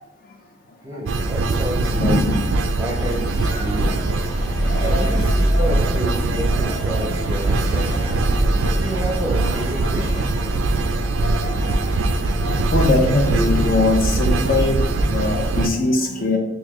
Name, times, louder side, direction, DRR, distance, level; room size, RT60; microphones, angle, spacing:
voice 1, 0.8-2.2 2.8-4.2 4.8-8.0 8.7-10.5, equal, 20° right, 0 dB, 0.6 m, -30 dB
sound 1, 1.1-15.7, right 3 dB, 75° right, 0.3 m, -22 dB
voice 2, 2.0-2.4 4.7-4.8 11.2-11.3 12.7-14.8 15.1-16.4, left 2 dB, 45° left, 3 dB, 0.5 m, -20 dB
sound 2, 3.0-15.6, equal, 20° left, 0.9 m, -25 dB
4.1 x 2.6 x 2.9 m, 0.89 s
head